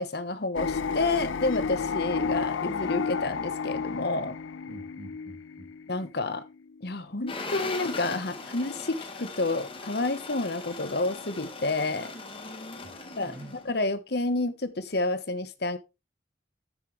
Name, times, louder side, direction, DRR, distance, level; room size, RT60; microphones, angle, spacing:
voice 1, 0.0-4.4 5.9-6.4 6.8-12.1 13.2-15.8, left 2 dB, 55° left, 1.1 m, -29 dB
sound 1, 0.5-6.9, left 5 dB, 85° left, 0.5 m, -32 dB
voice 2, 4.7-5.7 12.8-13.5, right 1 dB, 55° right, 2.5 m, -47 dB
sound 2, 7.3-13.7, left 3 dB, 30° left, 1.7 m, -39 dB
13.0 x 7.5 x 3.2 m
head